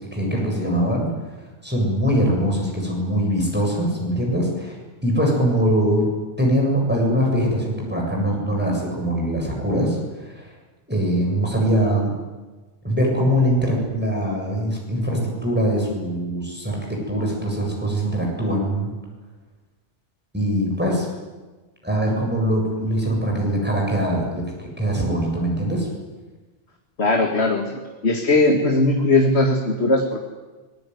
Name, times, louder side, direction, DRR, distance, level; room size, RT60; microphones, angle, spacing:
voice 1, 0.1-1.1 1.4-4.8 5.0-6.1 6.4-10.5 10.9-12.1 12.8-18.9 20.3-21.1 21.8-25.9, equal, 10° right, -1 dB, 7.5 m, -22 dB
voice 2, 27.0-27.7 28.0-30.2, left 2 dB, 80° left, 2 dB, 2.6 m, -19 dB
24.5 x 21.5 x 9.6 m, 1.2 s
omnidirectional pair, 1.1 m